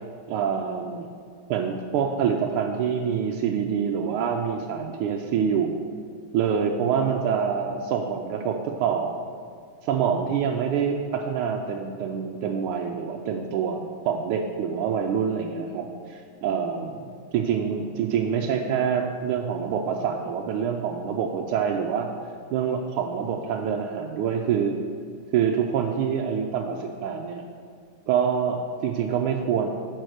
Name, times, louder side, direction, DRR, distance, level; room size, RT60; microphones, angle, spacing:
voice 1, 0.3-1.1 1.5-5.8 6.3-9.2 9.8-17.0 17.3-22.1 22.5-24.8 25.3-27.4 28.1-29.7, right 7 dB, 85° right, 2 dB, 1.5 m, -26 dB
9.0 x 4.8 x 6.3 m, 2.1 s
omnidirectional pair, 2.3 m